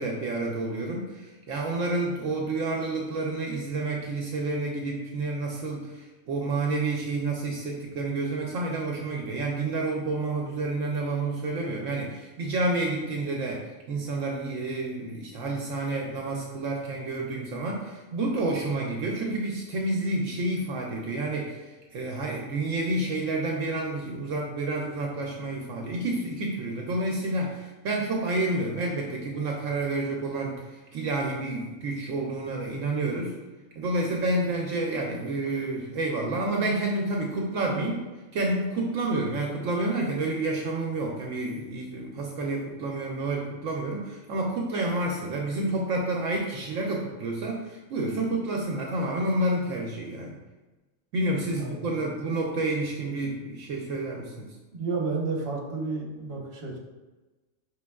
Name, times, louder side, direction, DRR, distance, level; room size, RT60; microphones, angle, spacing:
voice 1, 0.0-33.4 33.8-38.0 38.3-50.4 51.1-54.6, right 2 dB, 75° right, 0 dB, 0.9 m, -29 dB
voice 2, 51.5-52.1 54.7-56.8, right 4 dB, 50° right, -1 dB, 1.0 m, -31 dB
5.0 x 3.6 x 2.3 m, 1.2 s
omnidirectional pair, 1.4 m